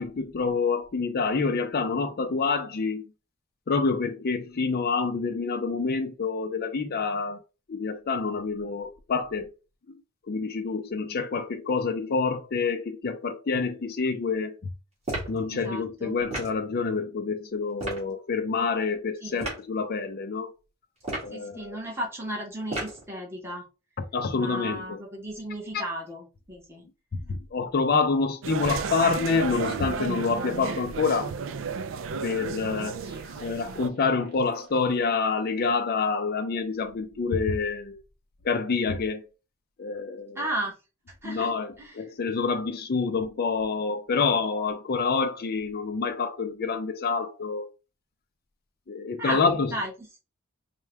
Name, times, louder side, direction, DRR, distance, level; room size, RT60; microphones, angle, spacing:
voice 1, 0.0-3.0 3.7-7.4 7.7-9.5 10.3-14.5 15.3-20.5 21.2-21.8 24.1-24.8 27.3-31.3 32.2-33.0 33.4-38.0 38.4-39.2 39.8-40.4 41.2-47.7 48.9-49.7, left 4 dB, 50° left, 0.5 m, -27 dB
sound 1, 15.0-15.4 16.3-16.6 17.8-18.0 19.4-19.6 21.0-21.4 22.7-23.0, right 2 dB, 30° right, 1.9 m, -33 dB
voice 2, 15.5-16.2 19.2-19.4 21.3-23.6 24.3-26.8 40.3-40.8 41.2-41.5 41.8-42.0 49.2-50.2, right 1 dB, 10° right, 1.1 m, -34 dB
sound 2, 28.4-33.9, right 5 dB, 70° right, 0.4 m, -33 dB
sound 3, 33.0-35.2, right 1 dB, 50° right, 1.6 m, -50 dB
4.4 x 2.3 x 3.3 m
head